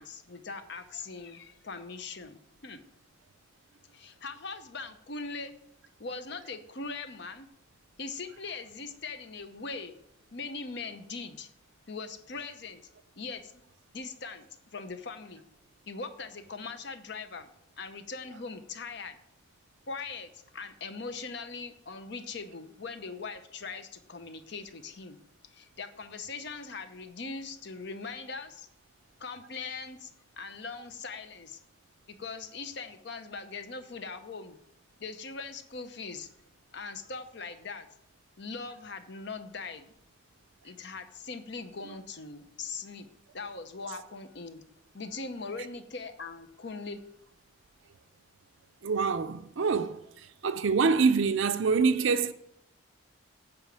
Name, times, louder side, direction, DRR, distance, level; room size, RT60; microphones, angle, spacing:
voice 1, 0.0-2.8 3.9-5.6 6.0-7.5 8.0-10.0 10.3-11.5 11.9-12.8 13.2-13.5 13.9-15.4 15.9-17.5 17.8-19.2 19.9-25.2 25.5-28.7 29.2-30.1 30.4-31.6 32.1-34.6 35.0-36.3 36.7-37.9 38.4-39.9 40.6-43.1 43.3-44.6 44.9-47.0, left 4 dB, 55° left, 0.8 m, -41 dB
voice 2, 48.8-50.0 50.4-52.3, right 5 dB, 65° right, 0.5 m, -25 dB
8.8 x 5.1 x 7.5 m
head